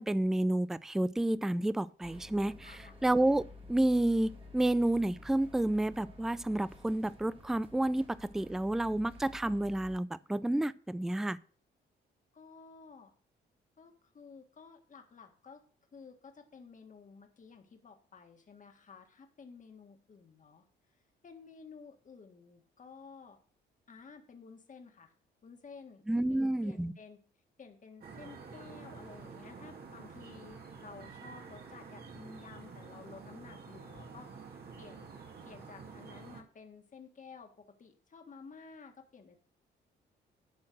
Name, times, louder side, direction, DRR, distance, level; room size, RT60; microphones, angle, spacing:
voice 1, 0.0-3.4 3.7-11.4 26.1-26.9, right 1 dB, ahead, 0.3 m, -30 dB
sound 1, 2.0-10.0, left 2 dB, 30° right, 2.0 m, -52 dB
voice 2, 2.6-3.0 12.3-13.1 13.8-15.6 15.9-20.6 21.2-23.4 23.9-25.1 25.4-27.2 27.6-34.5 34.8-35.1 35.4-39.4, left 5 dB, 40° left, 1.8 m, -53 dB
sound 2, 28.0-36.4, right 5 dB, 55° right, 2.2 m, -49 dB
11.5 x 4.4 x 6.2 m
cardioid pair, 90°, 20 cm